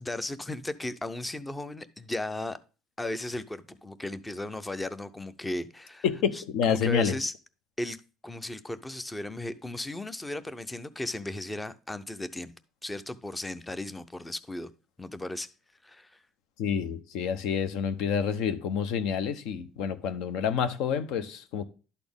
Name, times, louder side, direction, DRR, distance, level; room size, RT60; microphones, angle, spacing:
voice 1, 0.0-2.6 3.0-6.0 6.3-7.3 7.8-8.0 8.2-12.5 12.8-14.7 15.0-15.5 15.8-16.2, left 1 dB, 10° left, 0.5 m, -36 dB
voice 2, 6.0-7.1 16.6-21.6, left 7 dB, 70° left, 0.8 m, -28 dB
11.5 x 4.2 x 3.5 m
cardioid pair, 145°, 0 cm